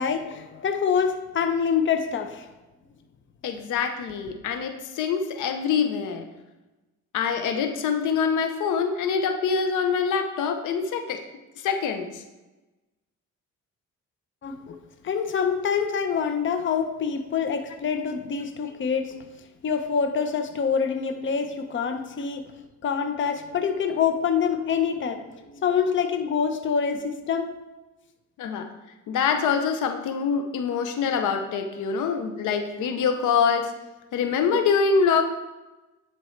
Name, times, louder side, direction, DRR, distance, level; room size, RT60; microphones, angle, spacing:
voice 1, 0.0-2.5 14.4-14.8 15.0-19.1 19.6-22.4 22.8-27.5, left 6 dB, 40° left, 7 dB, 0.7 m, -26 dB
voice 2, 3.4-6.2 7.1-11.2 11.6-12.2 18.6-18.7 28.4-28.7 29.1-33.7 34.1-35.2, left 6 dB, 80° left, 6 dB, 0.7 m, -25 dB
10.0 x 4.5 x 3.2 m, 1.1 s
cardioid pair, 90°, 30 cm